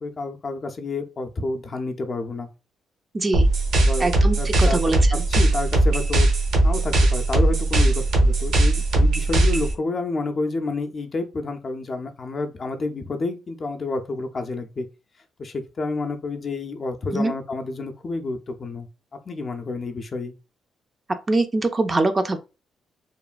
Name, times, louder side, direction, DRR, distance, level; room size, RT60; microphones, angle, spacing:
voice 1, 0.0-2.5 3.8-4.8 5.1-6.3 6.6-14.9 15.4-18.9 19.3-20.3, left 3 dB, 40° left, 0.4 m, -29 dB
voice 2, 3.1-3.5 4.0-5.2 17.1-17.3 21.3-22.4, right 2 dB, 30° right, 0.4 m, -23 dB
sound 1, 3.3-9.7, right 2 dB, 80° right, 0.9 m, -19 dB
3.0 x 2.2 x 2.4 m
cardioid pair, 90°, 0 cm